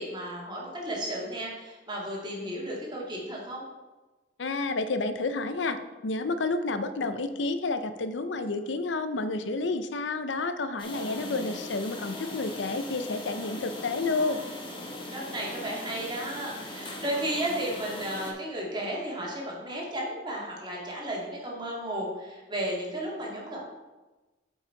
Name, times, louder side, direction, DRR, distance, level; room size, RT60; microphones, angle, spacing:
voice 1, 0.0-3.7 11.0-11.4 15.1-23.6, right 1 dB, 25° right, -4 dB, 2.2 m, -34 dB
voice 2, 4.4-14.4, left 3 dB, 90° left, 10 dB, 0.6 m, -30 dB
sound 1, 10.8-18.3, left 1 dB, 30° left, 1.3 m, -39 dB
8.3 x 5.5 x 4.5 m, 1.2 s
head